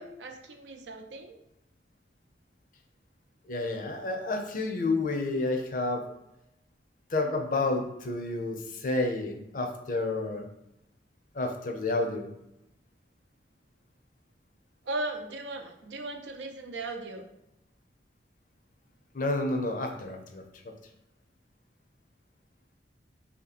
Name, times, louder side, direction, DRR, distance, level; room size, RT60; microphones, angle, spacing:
voice 1, 0.0-1.4 14.8-17.3, right 2 dB, 85° right, 4 dB, 0.6 m, -37 dB
voice 2, 3.5-6.0 7.1-10.5 11.3-12.3 19.1-20.7, left 2 dB, 50° left, 4 dB, 0.5 m, -30 dB
3.1 x 2.8 x 4.1 m, 0.85 s
head